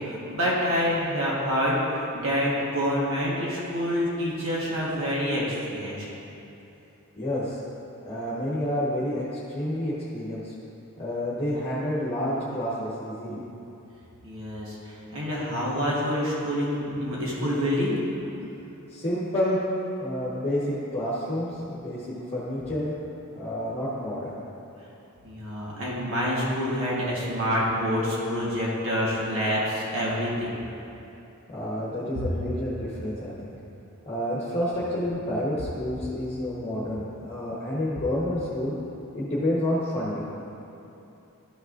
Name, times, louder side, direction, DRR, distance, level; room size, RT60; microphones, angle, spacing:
voice 1, 0.0-6.1 14.2-18.0 25.2-30.5, equal, 65° right, -6 dB, 1.4 m, -27 dB
voice 2, 7.2-7.6 8.1-10.5 11.0-13.4 18.9-19.6 20.0-22.9 23.3-24.3 31.5-33.6 34.0-38.7 39.1-40.3, left 1 dB, 25° left, -8 dB, 1.2 m, -29 dB
12.5 x 6.4 x 2.6 m, 2.9 s
head